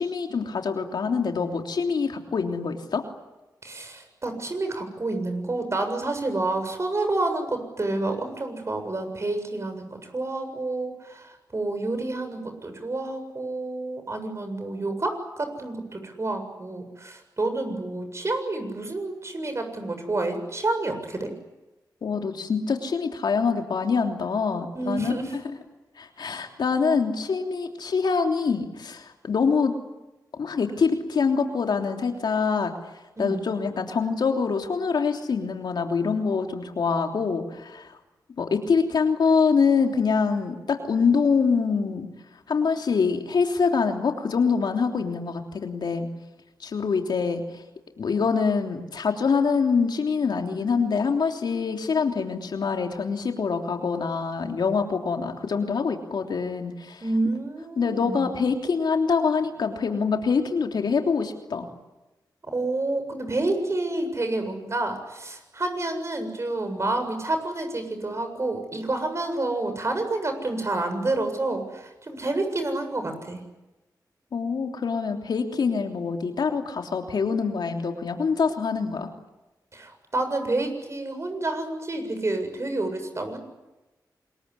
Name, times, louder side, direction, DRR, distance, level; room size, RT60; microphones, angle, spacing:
voice 1, 0.0-3.0 22.0-25.1 26.0-29.7 30.3-32.7 33.2-37.9 38.4-42.1 42.5-46.1 46.6-47.4 48.0-57.0 57.8-61.7 74.3-79.1, left 5 dB, 75° left, 4 dB, 3.2 m, -25 dB
voice 2, 3.6-21.3 24.7-25.3 33.2-33.5 57.0-58.4 62.4-73.4 79.7-83.4, right 2 dB, 40° right, 7 dB, 7.5 m, -29 dB
27.0 x 21.5 x 9.9 m, 1.0 s
cardioid pair, 60°, 7 cm